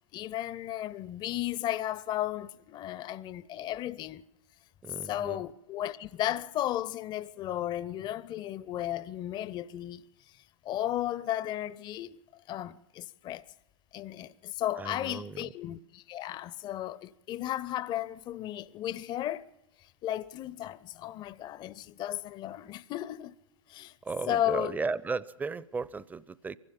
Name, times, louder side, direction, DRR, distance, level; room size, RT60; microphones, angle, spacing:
voice 1, 0.1-4.2 5.0-10.0 10.6-12.2 12.5-13.4 13.9-19.4 20.0-23.4 23.7-23.9 24.3-24.8, left 13 dB, 30° left, 0.6 m, -34 dB
voice 2, 4.8-5.4 14.8-15.5 24.0-26.6, right 4 dB, 10° right, 0.6 m, -35 dB
24.0 x 16.0 x 7.4 m
figure-of-eight pair, 105°, 16 cm